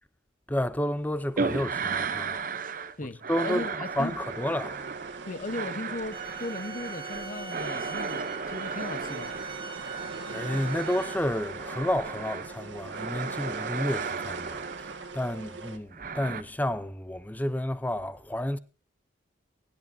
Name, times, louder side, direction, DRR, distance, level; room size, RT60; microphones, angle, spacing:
voice 1, 0.5-2.4 3.0-3.7 4.0-4.9 10.3-18.6, left 1 dB, 10° left, 0.5 m, -31 dB
sound 1, 1.4-3.0 3.2-12.5 12.9-15.2 15.9-16.4, right 5 dB, 45° right, 0.7 m, -35 dB
voice 2, 3.0-4.2 5.3-9.4, left 2 dB, 40° left, 0.8 m, -37 dB
sound 2, 3.8-15.8, right 3 dB, 75° right, 1.7 m, -42 dB
sound 3, 6.1-11.1, right 5 dB, 25° right, 1.2 m, -42 dB
22.0 x 11.0 x 2.7 m
head